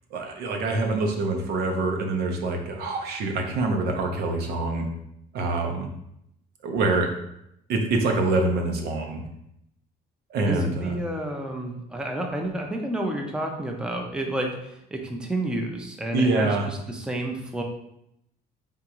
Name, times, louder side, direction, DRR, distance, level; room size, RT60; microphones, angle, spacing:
voice 1, 0.1-4.9 5.3-5.9 6.6-7.1 7.7-9.2 10.3-11.0 16.1-16.7, right 2 dB, 75° right, 3 dB, 0.8 m, -25 dB
voice 2, 10.5-17.6, right 1 dB, 5° right, 1 dB, 0.6 m, -30 dB
3.7 x 3.6 x 3.0 m, 0.79 s
cardioid pair, 110°, 17 cm